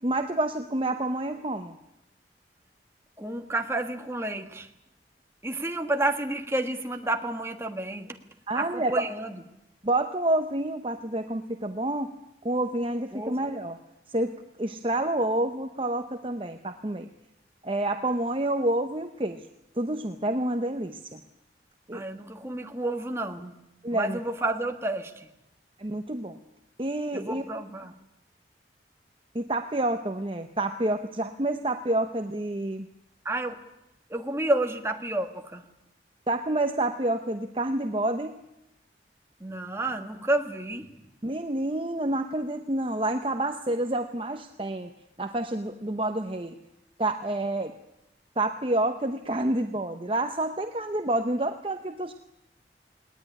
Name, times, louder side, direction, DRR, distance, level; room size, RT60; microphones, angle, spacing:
voice 1, 0.0-1.8 8.5-9.0 9.8-12.1 12.4-13.8 14.1-14.3 14.6-17.1 17.6-19.5 19.8-21.2 21.9-22.0 23.8-24.2 25.8-26.4 26.8-27.4 29.3-32.9 36.3-38.4 41.2-44.9 45.2-46.6 47.0-47.7 48.4-52.1, right 1 dB, 30° right, 7 dB, 0.9 m, -28 dB
voice 2, 3.2-4.7 5.4-8.2 8.5-9.4 13.1-13.4 21.9-23.5 23.9-25.3 27.1-27.9 33.2-33.6 34.1-35.6 39.4-41.0, right 2 dB, 15° right, 5 dB, 1.5 m, -30 dB
19.0 x 19.0 x 9.9 m, 0.90 s
head